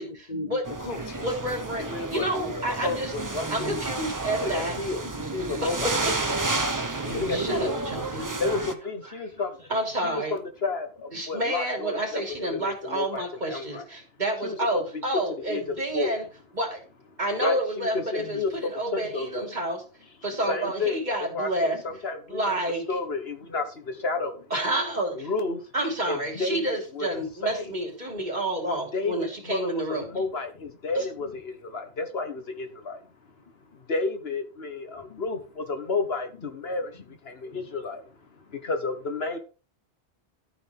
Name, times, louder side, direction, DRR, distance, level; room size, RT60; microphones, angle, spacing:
voice 1, 0.0-1.3 7.1-7.6 18.2-18.4 21.7-21.8 26.3-26.4 27.2-27.3 30.0-30.2 35.1-35.2 36.4-36.5 37.5-37.6, left 2 dB, 40° left, 1.1 m, -38 dB
sound 1, 0.6-8.7, right 2 dB, 20° right, 0.9 m, -31 dB
voice 2, 1.2-3.1 3.5-4.8 5.6-5.9 7.3-8.4 9.7-10.3 11.1-16.2 16.5-16.8 17.2-19.8 20.2-21.8 22.3-22.8 24.5-25.3 25.7-30.1 30.9-31.0, right 1 dB, 40° right, 3.5 m, -29 dB
voice 3, 1.8-2.5 2.8-3.7 4.4-5.9 7.0-7.8 8.4-9.6 10.0-13.9 14.4-15.0 15.4-15.6 15.9-16.2 17.4-19.5 20.5-21.0 21.3-22.6 22.9-24.5 25.1-25.6 26.1-27.7 28.9-33.0 33.7-39.4, left 3 dB, 65° left, 1.6 m, -31 dB
13.5 x 5.2 x 5.2 m
omnidirectional pair, 1.1 m